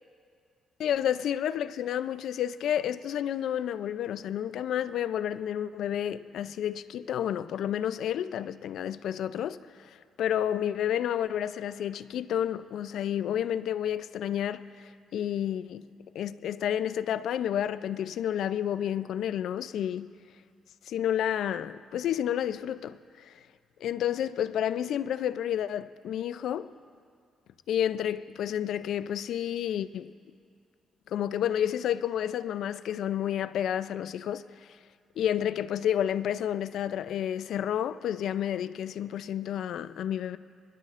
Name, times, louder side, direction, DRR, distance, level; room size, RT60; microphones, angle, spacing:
voice 1, 0.8-15.9 16.1-20.1 20.9-23.3 23.8-26.7 27.7-30.1 31.1-34.4 35.2-40.4, left 10 dB, 75° left, 0.4 m, -30 dB
25.5 x 11.5 x 2.5 m
cardioid pair, 90°, 0 cm